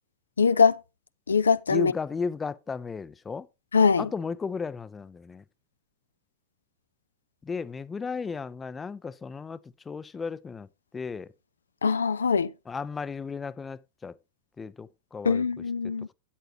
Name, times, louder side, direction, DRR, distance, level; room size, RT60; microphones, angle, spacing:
voice 1, 0.4-0.8 1.3-1.9 3.7-4.0 11.8-12.5 15.3-16.1, left 5 dB, 75° left, 0.4 m, -22 dB
voice 2, 1.7-3.5 4.0-5.4 7.4-9.6 9.9-10.7 10.9-11.3 12.7-14.2 14.6-15.4 15.8-16.1, left 5 dB, 15° left, 0.5 m, -34 dB
12.5 x 8.8 x 2.8 m
figure-of-eight pair, 90°, 0 cm